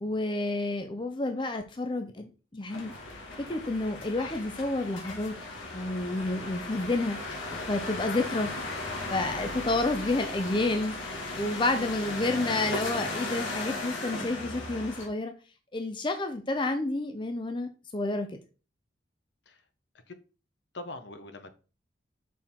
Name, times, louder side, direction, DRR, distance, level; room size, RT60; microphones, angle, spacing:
voice 1, 0.0-2.9 3.5-5.3 5.7-7.2 7.7-8.5 9.1-10.9 11.3-15.3 15.7-18.3, left 2 dB, 25° left, 0.5 m, -30 dB
sound 1, 2.7-15.1, left 2 dB, 90° left, 1.9 m, -36 dB
voice 2, 20.7-21.5, left 2 dB, 65° left, 0.8 m, -43 dB
6.2 x 4.3 x 3.7 m
head